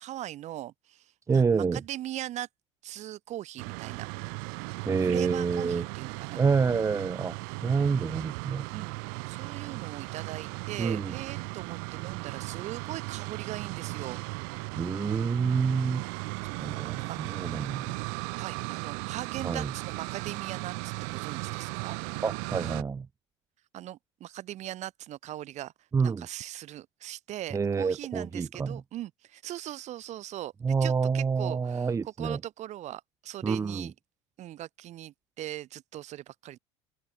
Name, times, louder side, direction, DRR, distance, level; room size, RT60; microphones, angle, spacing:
voice 1, 0.0-2.5 2.8-4.1 4.8-6.4 6.9-7.0 8.7-9.0 9.3-14.2 16.4-17.7 18.3-22.2 23.7-25.7 26.0-33.9 34.4-36.6, right 13 dB, 50° right, 4.2 m, -40 dB
voice 2, 1.3-1.8 4.9-5.8 6.3-7.3 7.6-8.7 10.8-11.2 14.8-16.0 16.6-18.0 19.4-19.7 22.2-23.1 25.9-26.3 27.5-28.8 30.6-32.4 33.4-33.9, right 5 dB, 20° right, 0.7 m, -27 dB
sound 1, 3.6-22.8, right 40 dB or more, 65° right, 6.6 m, -37 dB
open air
hypercardioid pair, 70°, 15 cm